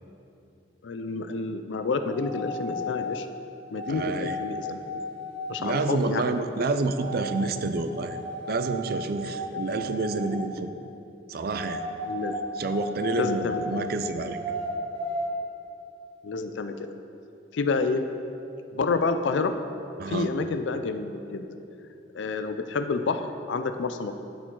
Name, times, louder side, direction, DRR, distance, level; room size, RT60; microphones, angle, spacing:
voice 1, 0.8-3.3 3.7-4.8 5.5-6.3 12.1-12.3 13.2-13.6 16.2-16.7 17.5-18.1 18.7-19.5 20.1-21.5 22.1-24.1, left 4 dB, 80° left, 8 dB, 0.5 m, -28 dB
sound 1, 2.1-3.3 3.7-5.8 7.0-7.5 7.9-10.4 11.5-13.8 14.3-15.3, left 1 dB, 25° right, 1.3 m, -34 dB
voice 2, 3.9-4.4 5.6-8.2 8.5-10.7 11.3-11.8 12.6-14.4 20.0-20.3, right 3 dB, 55° right, 9 dB, 0.4 m, -28 dB
12.0 x 5.0 x 3.8 m, 2.8 s
head